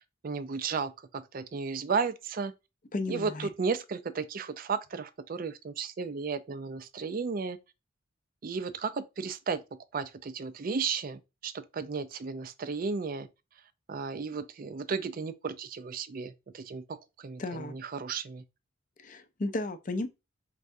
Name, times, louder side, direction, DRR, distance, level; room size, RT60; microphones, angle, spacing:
voice 1, 0.2-2.5 3.1-7.6 8.4-9.6 9.9-13.3 13.9-18.4, right 5 dB, 45° right, 0.4 m, -34 dB
voice 2, 2.9-3.5 17.4-17.7 19.0-20.1, left 2 dB, 40° left, 0.5 m, -34 dB
4.7 x 3.3 x 2.6 m
head